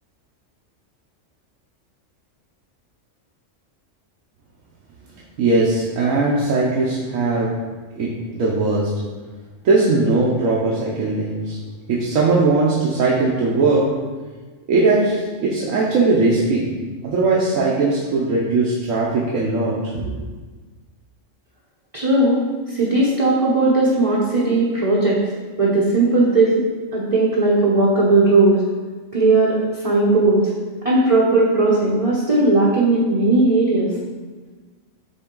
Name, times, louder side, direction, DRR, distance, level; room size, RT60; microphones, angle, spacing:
voice 1, 5.4-7.5 7.9-8.9 9.6-11.6 11.9-13.8 14.7-16.7 17.0-20.2, right 3 dB, 85° right, -5 dB, 1.2 m, -19 dB
voice 2, 21.9-25.2 25.6-26.6 26.9-28.6 29.1-30.4 30.8-34.0, right 2 dB, 30° right, -5 dB, 0.8 m, -17 dB
6.8 x 3.7 x 3.7 m, 1.4 s
omnidirectional pair, 1.3 m